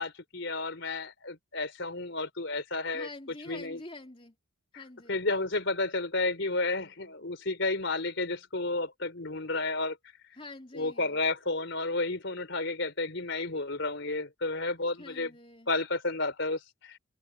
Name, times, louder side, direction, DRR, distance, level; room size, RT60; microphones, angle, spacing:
voice 1, 0.0-3.1 3.5-3.8 5.1-10.0 10.7-15.3 15.7-17.0, left 2 dB, 60° left, 4.5 m, -31 dB
voice 2, 2.9-4.3 4.7-5.2 10.4-11.2 15.0-15.7, left 2 dB, 25° left, 3.5 m, -46 dB
head